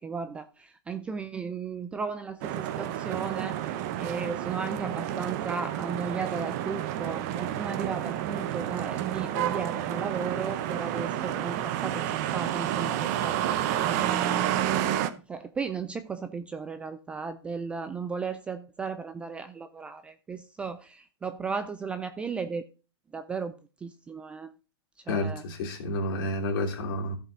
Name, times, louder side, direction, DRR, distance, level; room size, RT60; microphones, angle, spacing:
voice 1, 0.0-3.7 4.0-13.5 13.8-22.6 23.1-23.5 23.8-24.5 25.1-25.4, right 5 dB, 10° right, 10 dB, 0.3 m, -35 dB
sound 1, 2.4-15.1, right 11 dB, 40° right, 0.9 m, -30 dB
voice 2, 25.1-27.1, left 1 dB, 50° left, 1 dB, 2.9 m, -30 dB
14.5 x 5.4 x 3.8 m, 0.33 s
hypercardioid pair, 155°, 14 cm